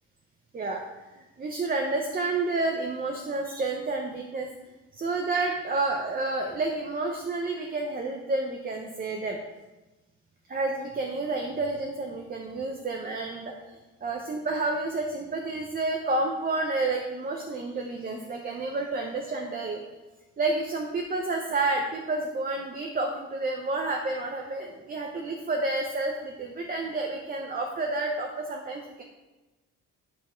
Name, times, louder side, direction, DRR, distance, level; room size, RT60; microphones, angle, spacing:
voice 1, 1.2-4.5 4.9-9.4 10.5-19.8 20.4-29.0, right 3 dB, 25° right, 2 dB, 0.7 m, -30 dB
10.5 x 5.3 x 4.4 m, 1.1 s
cardioid pair, 155°, 35 cm